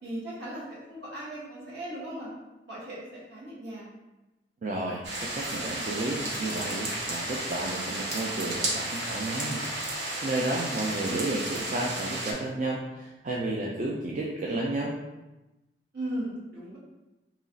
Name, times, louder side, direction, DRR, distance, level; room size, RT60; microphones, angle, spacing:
voice 1, 0.0-2.3 2.7-3.9 15.9-16.8, right 1 dB, 70° right, -7 dB, 1.4 m, -37 dB
voice 2, 4.6-9.9 10.2-14.9, right 2 dB, 45° right, -3 dB, 0.4 m, -32 dB
sound 1, 5.0-12.3, right 1 dB, 90° right, 0.8 m, -33 dB
3.0 x 2.3 x 3.8 m, 1.0 s
head